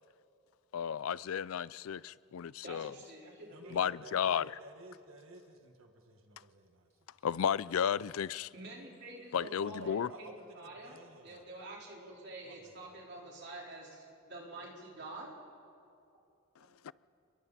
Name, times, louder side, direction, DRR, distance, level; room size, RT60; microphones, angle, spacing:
voice 1, 0.7-2.9 3.7-4.5 7.2-8.5 9.3-10.1 16.8-16.9, left 8 dB, 75° left, 0.4 m, -33 dB
voice 2, 2.6-3.9 8.5-11.0 11.2-15.3 16.6-16.8, right 2 dB, 50° right, 4.1 m, -48 dB
voice 3, 3.5-7.1 9.4-11.5 12.4-13.0, right 2 dB, 70° right, 1.7 m, -54 dB
29.5 x 21.5 x 4.2 m
head